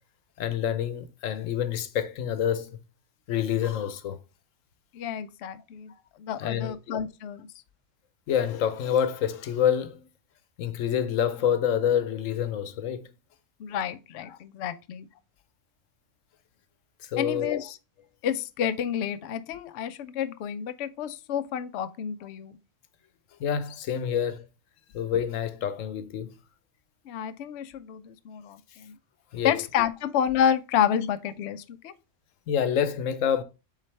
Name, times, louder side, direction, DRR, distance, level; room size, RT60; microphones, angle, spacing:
voice 1, 0.4-2.8 3.3-4.2 6.4-6.8 8.3-10.1 10.6-13.1 14.3-14.4 17.0-17.6 23.4-24.5 24.9-26.3 29.3-29.5 32.5-33.4, left 9 dB, 85° left, 1.1 m, -27 dB
voice 2, 4.9-5.9 6.2-7.5 13.6-15.1 17.2-17.8 18.2-22.5 27.1-28.9 29.4-31.9, left 9 dB, 65° left, 0.8 m, -29 dB
7.4 x 4.1 x 3.2 m
omnidirectional pair, 1.3 m